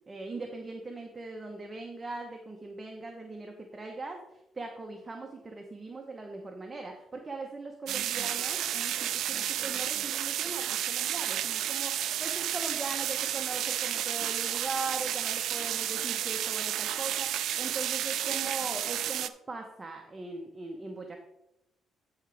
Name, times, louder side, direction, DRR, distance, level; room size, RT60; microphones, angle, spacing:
voice 1, 0.1-21.3, right 3 dB, 25° right, 2 dB, 1.0 m, -40 dB
sound 1, 7.9-19.3, right 11 dB, 80° right, 0.4 m, -31 dB
13.0 x 4.9 x 3.4 m, 0.87 s
cardioid pair, 90°, 0 cm